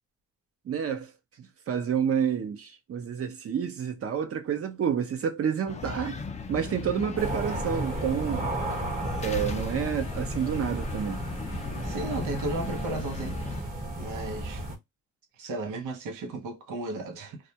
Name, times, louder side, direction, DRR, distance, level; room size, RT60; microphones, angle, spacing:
voice 1, 0.7-1.1 1.4-6.2 6.5-8.5 9.2-11.2, right 8 dB, 50° right, 0.7 m, -29 dB
sound 1, 5.7-13.6, left 5 dB, 25° left, 0.4 m, -37 dB
sound 2, 7.2-14.8, right 2 dB, 30° right, 1.0 m, -34 dB
voice 2, 11.8-13.7 14.0-14.6 15.4-17.4, right 2 dB, 85° right, 0.8 m, -34 dB
2.3 x 2.2 x 2.8 m
cardioid pair, 90°, 30 cm